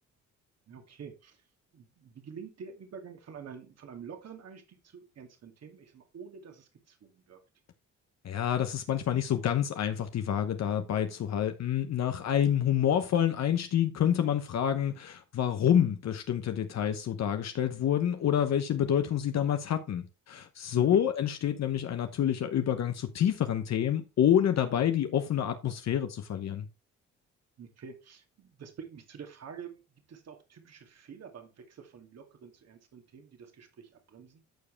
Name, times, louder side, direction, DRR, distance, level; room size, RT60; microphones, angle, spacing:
voice 1, 0.7-1.4 1.7-7.4 20.7-21.0 27.6-29.8 30.1-34.4, right 6 dB, 55° right, 2.3 m, -47 dB
voice 2, 8.2-26.7, left 9 dB, 60° left, 1.1 m, -28 dB
14.0 x 4.8 x 3.3 m
cardioid pair, 90°, 30 cm